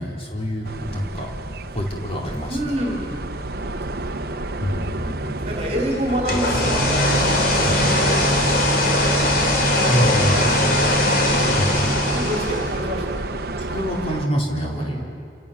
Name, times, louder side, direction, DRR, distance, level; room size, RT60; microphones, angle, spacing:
voice 1, 0.0-1.3 1.7-2.8 3.9-4.3 4.6-5.8 7.6-7.9 9.9-10.7 11.5-11.8 13.7-15.0, equal, 35° left, -1 dB, 4.4 m, -26 dB
sound 1, 0.6-14.3, right 2 dB, 55° right, 1.0 m, -30 dB
voice 2, 2.5-3.3 5.4-7.0 7.5-9.2 9.7-10.8 12.1-13.2 14.6-15.0, equal, 35° right, -1 dB, 3.5 m, -28 dB
sound 2, 6.1-12.9, left 1 dB, 55° left, 3.6 m, -20 dB
sound 3, 6.4-11.8, right 1 dB, 15° right, 3.7 m, -35 dB
28.5 x 28.5 x 7.2 m, 2.4 s
head